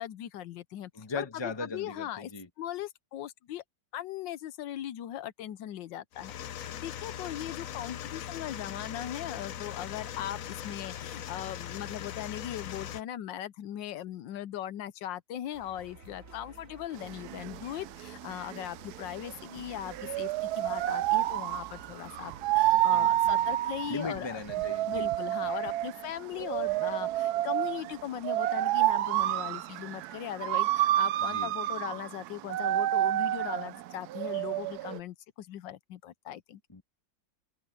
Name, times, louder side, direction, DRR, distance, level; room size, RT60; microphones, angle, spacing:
voice 1, 0.0-1.3 1.6-2.3 2.6-3.6 3.9-24.4 24.9-36.6, left 12 dB, 80° left, 1.4 m, -39 dB
voice 2, 0.9-2.5 22.9-23.5 23.9-25.1 31.3-31.5 36.7-36.8, left 3 dB, 15° left, 1.1 m, -38 dB
sound 1, 6.1-13.0, left 10 dB, 60° left, 1.0 m, -40 dB
sound 2, 15.5-22.9, right 3 dB, 45° right, 2.7 m, -52 dB
sound 3, 17.0-35.0, right 14 dB, 70° right, 1.0 m, -29 dB
omnidirectional pair, 2.0 m